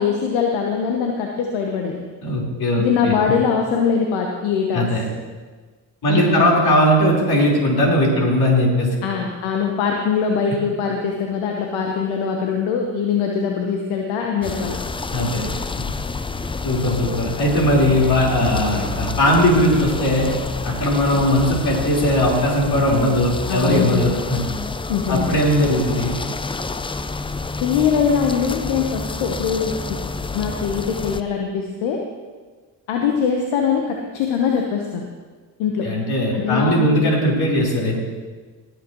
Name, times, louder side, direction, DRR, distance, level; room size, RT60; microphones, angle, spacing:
voice 1, 0.0-2.0 2.8-4.9 6.1-6.5 9.0-14.8 23.5-24.0 24.9-25.2 27.6-29.8 30.3-32.0 32.9-35.0 35.6-35.9 36.3-37.0, left 6 dB, 70° left, 2 dB, 1.2 m, -22 dB
voice 2, 2.2-3.1 4.7-5.0 6.0-8.9 15.1-15.5 16.6-20.3 20.6-24.4 25.1-26.1 35.8-38.0, left 1 dB, 50° left, -3 dB, 4.3 m, -18 dB
sound 1, 14.4-31.2, left 3 dB, 10° left, 0.4 m, -28 dB
20.0 x 8.4 x 3.1 m, 1.4 s
hypercardioid pair, 55°, 50 cm